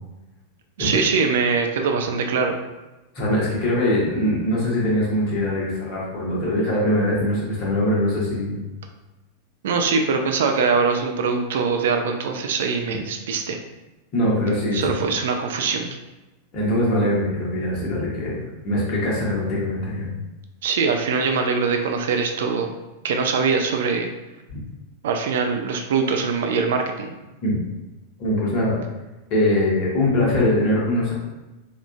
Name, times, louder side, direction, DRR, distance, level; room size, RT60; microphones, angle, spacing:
voice 1, 0.8-2.5 9.6-13.6 14.7-16.0 20.6-22.8 23.0-24.1 25.0-27.1, right 5 dB, 60° right, 4 dB, 0.3 m, -22 dB
voice 2, 3.1-8.6 12.9-13.0 14.1-15.0 16.5-18.4 18.6-20.1 27.4-27.6 28.2-28.8 29.3-31.1, left 1 dB, 40° left, -5 dB, 1.1 m, -22 dB
3.5 x 2.4 x 2.4 m, 1.1 s
figure-of-eight pair, 90°, 0 cm